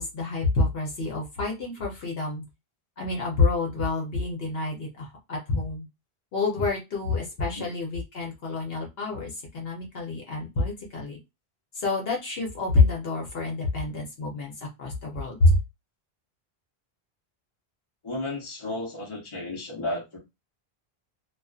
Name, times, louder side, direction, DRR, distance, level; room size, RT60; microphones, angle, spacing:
voice 1, 0.0-2.4 3.0-5.9 6.3-11.2 11.7-14.5 14.8-15.6, left 3 dB, 65° left, 1.0 m, -27 dB
voice 2, 18.0-20.2, left 2 dB, 30° left, 0.9 m, -33 dB
2.4 x 2.4 x 2.4 m
omnidirectional pair, 1.1 m